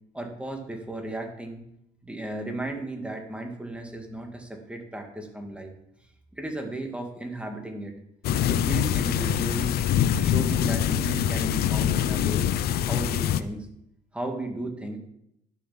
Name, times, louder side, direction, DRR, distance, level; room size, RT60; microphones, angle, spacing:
voice 1, 0.1-1.6 2.0-5.7 6.3-7.9 8.4-9.8 10.2-12.5 12.8-13.7 14.1-15.0, right 1 dB, 5° right, 3 dB, 2.3 m, -35 dB
sound 1, 8.2-13.4, left 10 dB, 70° left, 0.6 m, -24 dB
11.5 x 7.2 x 5.9 m, 0.76 s
cardioid pair, 110°, 17 cm